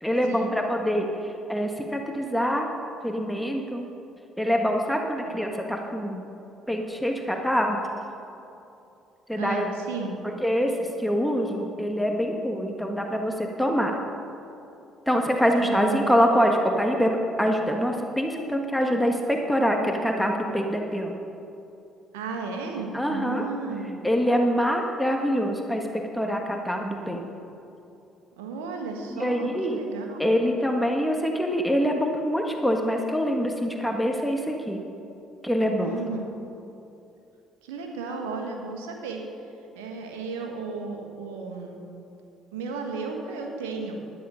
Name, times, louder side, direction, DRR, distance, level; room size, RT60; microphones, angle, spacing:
voice 1, 0.0-2.7 3.0-3.9 4.4-6.3 6.7-7.8 9.3-9.7 10.4-14.0 15.1-21.2 22.9-23.4 24.0-27.2 29.1-29.8 30.2-34.8 35.4-35.9, equal, ahead, 2 dB, 1.4 m, -25 dB
voice 2, 9.4-10.1 15.6-16.2 22.1-24.0 28.4-30.3 35.7-36.3 37.6-39.2 39.7-41.9 42.5-43.9, right 4 dB, 90° right, 2 dB, 1.4 m, -34 dB
11.5 x 9.9 x 5.6 m, 2.7 s
hypercardioid pair, 60°, 0 cm